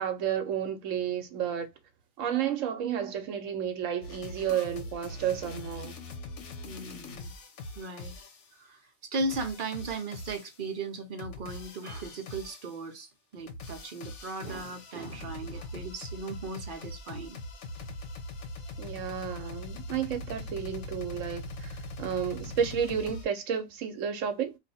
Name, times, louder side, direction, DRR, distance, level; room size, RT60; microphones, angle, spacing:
voice 1, 0.0-1.7 2.2-6.0 18.8-21.7 22.0-24.6, right 8 dB, 75° right, 1.0 m, -31 dB
sound 1, 4.0-8.5 9.2-10.7 11.2-12.9 13.3-23.3, left 2 dB, 65° left, 1.1 m, -42 dB
voice 2, 6.6-7.3 7.8-8.2 8.6-17.4, right 3 dB, 50° right, 0.7 m, -37 dB
2.7 x 2.5 x 4.1 m
omnidirectional pair, 1.4 m